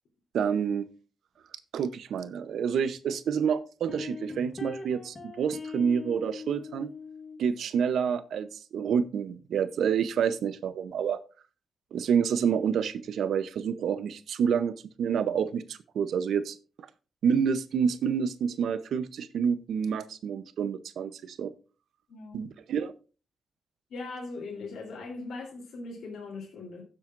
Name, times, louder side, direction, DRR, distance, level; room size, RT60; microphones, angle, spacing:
voice 1, 0.3-0.9 1.7-6.9 7.4-11.2 11.9-16.6 17.2-21.5 22.3-22.9, right 7 dB, 70° right, 13 dB, 0.7 m, -28 dB
sound 1, 3.9-7.4, left 4 dB, 25° left, 1.3 m, -41 dB
voice 2, 22.1-22.4 23.9-26.8, left 3 dB, 70° left, -1 dB, 3.3 m, -40 dB
15.5 x 7.5 x 2.5 m, 0.34 s
wide cardioid pair, 175°, 0 cm